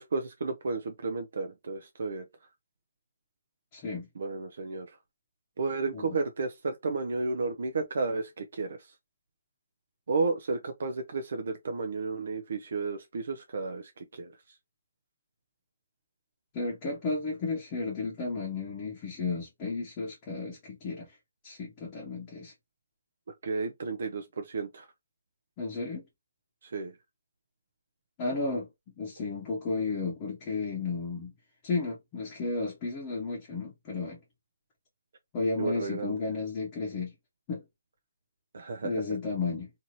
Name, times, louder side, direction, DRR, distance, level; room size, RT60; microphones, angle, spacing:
voice 1, 0.0-2.2 4.2-4.9 5.6-8.8 10.1-14.3 23.4-24.9 26.6-26.9 35.6-36.2 38.5-39.0, right 3 dB, 60° right, 0.5 m, -32 dB
voice 2, 3.7-4.1 5.9-6.2 16.5-21.1 21.4-22.5 25.6-26.0 28.2-28.7 29.0-31.3 31.6-34.2 35.3-37.1 37.5-37.6 38.8-39.7, left 3 dB, 25° left, 0.8 m, -33 dB
2.7 x 2.6 x 2.9 m
hypercardioid pair, 160°, 0 cm